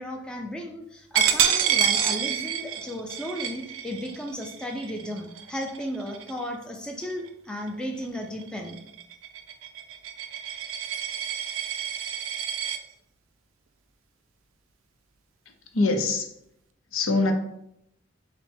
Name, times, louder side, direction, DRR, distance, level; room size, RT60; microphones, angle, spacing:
voice 1, 0.0-8.8, equal, 5° left, 1 dB, 0.4 m, -35 dB
Coin (dropping), 1.1-6.5 7.0-7.3 7.7-12.8, right 9 dB, 80° right, 0.4 m, -28 dB
voice 2, 15.7-16.3 16.9-17.3, left 3 dB, 85° left, 4 dB, 0.7 m, -23 dB
5.7 x 2.1 x 3.4 m, 0.78 s
head